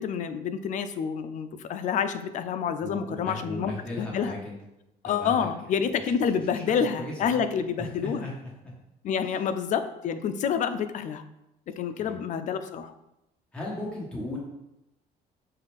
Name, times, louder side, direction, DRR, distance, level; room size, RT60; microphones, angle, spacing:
voice 1, 0.0-4.3 5.0-8.3 9.0-11.2 11.8-12.9, left 7 dB, 50° left, 10 dB, 0.4 m, -28 dB
voice 2, 2.8-4.5 5.0-6.1 6.5-7.4 7.8-8.3 8.6-8.7 12.0-12.2 13.5-14.4, left 2 dB, 5° left, -5 dB, 1.5 m, -37 dB
5.5 x 2.4 x 3.5 m, 0.89 s
cardioid pair, 110°, 17 cm